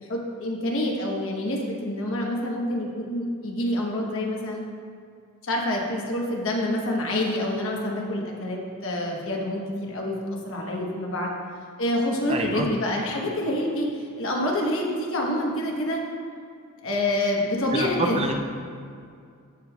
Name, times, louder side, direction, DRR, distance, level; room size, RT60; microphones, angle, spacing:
voice 1, 0.1-4.6 5.4-10.2 10.4-11.3 11.8-16.0 16.8-18.3, left 1 dB, 65° left, -1 dB, 1.1 m, -27 dB
voice 2, 12.3-12.7 17.7-18.3, right 2 dB, 25° right, 3 dB, 0.5 m, -26 dB
14.5 x 5.2 x 2.3 m, 2.3 s
head